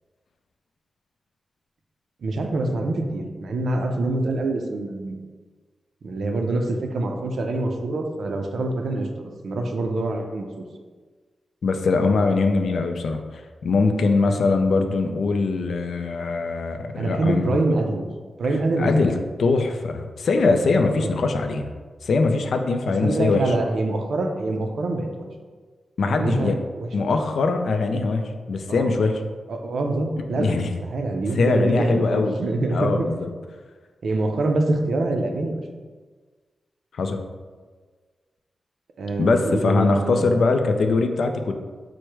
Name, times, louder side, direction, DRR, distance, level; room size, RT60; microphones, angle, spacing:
voice 1, 2.2-5.2 6.0-10.6 17.0-18.0 18.4-19.1 20.9-21.1 23.0-25.3 26.0-27.1 28.7-28.9 29.5-30.5 30.8-33.1 34.0-35.6 39.0-40.3, right 2 dB, 70° right, 3 dB, 0.5 m, -25 dB
voice 2, 11.6-13.2 13.6-17.5 18.8-19.1 19.4-21.7 22.0-23.5 26.0-26.6 26.9-28.2 28.5-29.2 30.4-30.7 31.4-32.3 32.7-33.3 36.9-37.2 39.2-41.5, left 3 dB, 75° left, 6 dB, 0.3 m, -22 dB
4.6 x 2.1 x 4.5 m, 1.4 s
wide cardioid pair, 130°, 0 cm